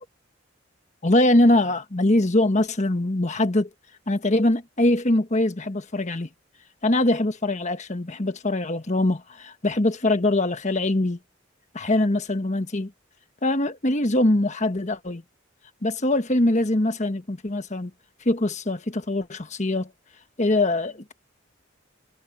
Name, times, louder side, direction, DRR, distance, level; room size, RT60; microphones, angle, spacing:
voice 1, 1.0-3.7 4.1-6.3 6.8-11.2 11.7-12.9 13.4-15.2 15.8-17.9 18.2-19.9 20.4-21.1, left 1 dB, 35° left, 1.3 m, -22 dB
head